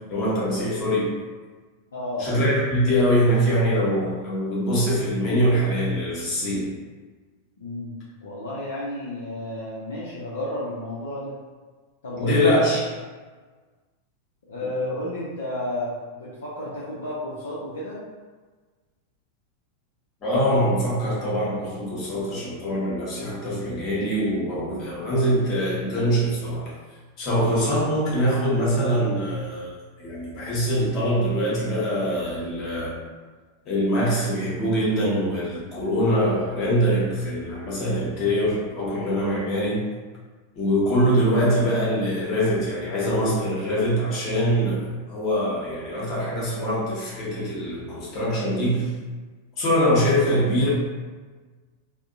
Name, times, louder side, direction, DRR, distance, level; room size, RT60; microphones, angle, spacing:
voice 1, 0.1-1.1 2.2-6.7 12.2-12.8 20.2-26.7 27.2-29.7 30.0-33.0 33.6-39.8 40.5-48.9 49.6-50.7, equal, 35° left, -6 dB, 0.9 m, -23 dB
voice 2, 1.9-2.4 7.6-7.9 8.2-11.3 12.0-12.4 14.5-18.0, left 1 dB, 65° left, -8 dB, 0.5 m, -31 dB
2.6 x 2.0 x 2.4 m, 1.4 s
figure-of-eight pair, 90°, 0 cm